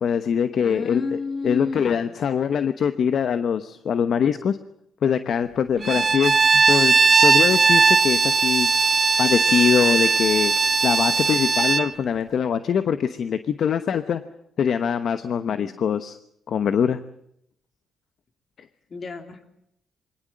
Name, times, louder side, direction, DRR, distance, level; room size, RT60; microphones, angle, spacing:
voice 1, 0.0-1.2 1.4-4.6 5.0-7.0 7.2-8.7 9.2-10.5 10.8-14.2 14.6-16.2 16.5-17.0, left 7 dB, 60° left, 11 dB, 1.0 m, -23 dB
voice 2, 0.6-2.0 5.7-6.0 15.5-15.7 18.9-19.4, left 4 dB, 40° left, 6 dB, 3.5 m, -32 dB
Bowed string instrument, 5.8-11.9, right 4 dB, 35° right, 0.9 m, -18 dB
23.0 x 18.0 x 8.7 m, 0.74 s
cardioid pair, 90°, 0 cm